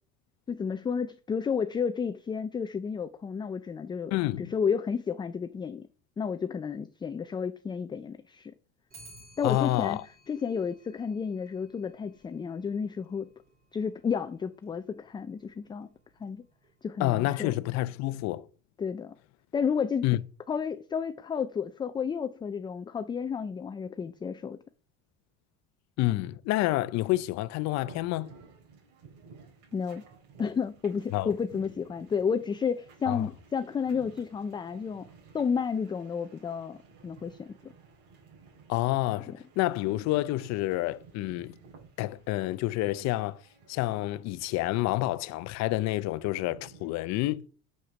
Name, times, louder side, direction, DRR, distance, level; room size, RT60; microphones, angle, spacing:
voice 1, 0.5-5.9 6.2-8.5 9.4-10.0 10.3-13.3 13.7-15.9 16.2-16.4 16.8-17.5 18.8-19.1 19.5-20.1 20.5-24.6 29.7-30.0 30.4-35.1 35.3-37.7, left 6 dB, 15° left, 0.3 m, -31 dB
voice 2, 4.1-4.5 9.4-10.0 17.0-18.5 20.0-20.2 26.0-28.3 31.1-31.3 33.1-33.3 38.7-41.6 42.0-43.4 43.7-47.4, left 17 dB, 55° left, 0.6 m, -28 dB
Clock, 8.9-18.3, right 1 dB, 30° right, 2.5 m, -59 dB
sound 1, 27.8-46.9, right 5 dB, 65° right, 4.1 m, -55 dB
6.7 x 6.4 x 5.9 m
cardioid pair, 125°, 32 cm